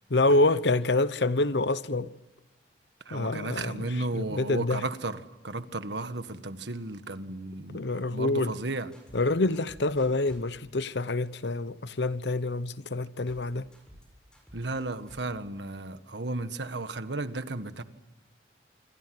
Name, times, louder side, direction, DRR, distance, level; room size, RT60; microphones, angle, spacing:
voice 1, 0.1-2.1 3.1-3.8 4.1-4.8 7.7-8.5 9.1-13.7, left 2 dB, 80° left, 1.0 m, -27 dB
voice 2, 3.0-8.9 14.5-17.8, right 2 dB, 80° right, 1.6 m, -34 dB
sound 1, 8.9-9.2 9.5-10.4 13.3-13.5 13.7-14.1 14.3-15.3, equal, 5° left, 6.8 m, -52 dB
27.0 x 24.5 x 7.8 m
head